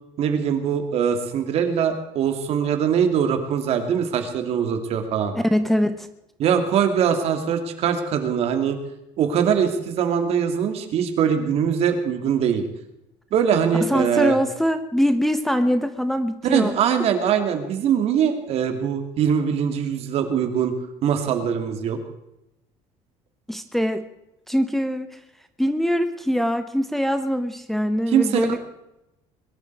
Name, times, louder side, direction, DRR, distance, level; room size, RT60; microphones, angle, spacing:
voice 1, 0.2-5.3 6.4-8.8 9.2-12.6 13.3-14.4 16.4-20.7 21.0-22.0 28.1-28.5, right 8 dB, 60° right, 6 dB, 2.6 m, -22 dB
voice 2, 5.3-6.1 13.8-16.7 23.5-24.1 24.5-25.2 25.6-28.6, equal, ahead, 8 dB, 1.0 m, -23 dB
22.0 x 12.5 x 4.8 m, 0.89 s
cardioid pair, 135°, 12 cm